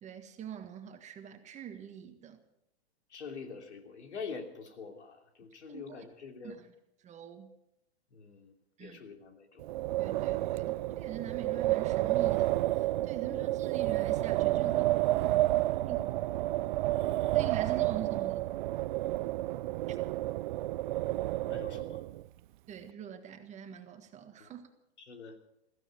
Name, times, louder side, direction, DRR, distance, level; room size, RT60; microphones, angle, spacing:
voice 1, 0.0-2.4 5.7-5.8 6.4-6.7 7.0-7.5 8.8-9.0 10.0-15.4 15.9-16.0 17.3-18.5 19.9-20.0 22.7-24.7, right 9 dB, 20° right, 7 dB, 1.5 m, -44 dB
voice 2, 3.1-6.6 8.1-8.5 8.8-9.6 13.3-13.5 21.4-22.0 24.4-24.5 25.0-25.4, left 5 dB, 90° left, 4 dB, 3.1 m, -45 dB
Wind, 9.6-22.2, right 16 dB, 50° right, 0.5 m, -30 dB
16.0 x 15.0 x 5.9 m, 0.83 s
hypercardioid pair, 135°, 33 cm